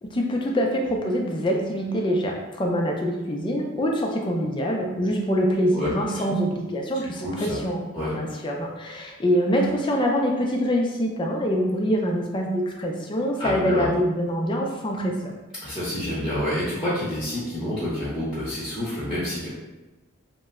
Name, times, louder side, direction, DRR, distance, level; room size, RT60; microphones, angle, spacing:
voice 1, 0.0-7.9 8.1-15.3, equal, 20° left, 0 dB, 0.4 m, -25 dB
voice 2, 7.2-7.6 7.9-8.1 13.4-13.9 15.6-19.5, left 1 dB, ahead, -10 dB, 0.8 m, -28 dB
2.9 x 2.1 x 3.5 m, 1.1 s
head